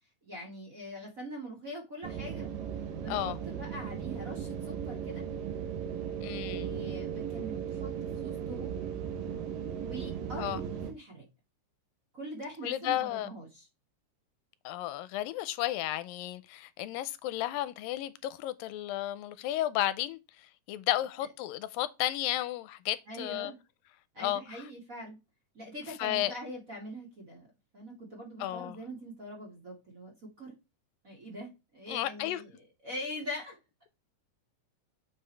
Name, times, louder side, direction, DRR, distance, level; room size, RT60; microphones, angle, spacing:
voice 1, 0.2-2.5 3.0-5.3 6.1-8.8 9.8-11.3 12.1-13.7 23.1-23.6 24.1-25.2 25.5-27.5 27.7-30.6 31.0-32.5 32.8-33.6, equal, 30° right, 2.0 m, -43 dB
sound 1, 2.0-10.9, right 8 dB, 75° right, 2.8 m, -37 dB
voice 2, 6.2-6.7 10.4-10.6 12.6-13.3 14.7-23.5 24.2-24.7 25.9-26.3 28.4-28.8 31.9-32.4, left 14 dB, 85° left, 2.3 m, -33 dB
7.2 x 5.5 x 3.3 m
omnidirectional pair, 4.0 m